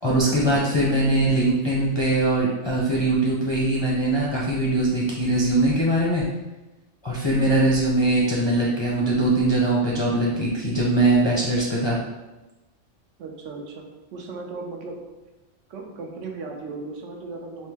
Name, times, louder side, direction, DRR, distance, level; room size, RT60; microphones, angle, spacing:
voice 1, 0.0-6.2 7.0-12.0, right 1 dB, 35° left, -5 dB, 0.4 m, -21 dB
voice 2, 13.2-13.8 14.1-15.0 15.7-17.7, right 3 dB, 80° right, 2 dB, 1.0 m, -36 dB
3.8 x 2.7 x 3.4 m, 1.1 s
omnidirectional pair, 1.3 m